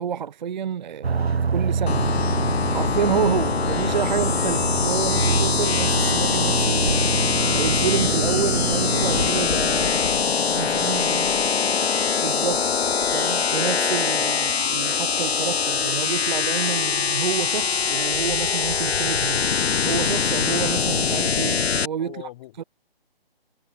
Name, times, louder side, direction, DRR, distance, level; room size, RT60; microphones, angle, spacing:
voice 1, 0.0-2.0 2.7-11.3 12.2-12.6 13.1-19.4 19.8-22.3 22.6-22.7, right 8 dB, 50° right, 0.5 m, -29 dB
sound 1, 1.0-9.3, right 5 dB, 85° right, 1.3 m, -26 dB
sound 2, 1.9-21.9, left 6 dB, 85° left, 1.0 m, -23 dB
voice 2, 10.6-12.1 22.0-22.7, left 16 dB, 30° left, 3.3 m, -44 dB
hypercardioid pair, 150°, 31 cm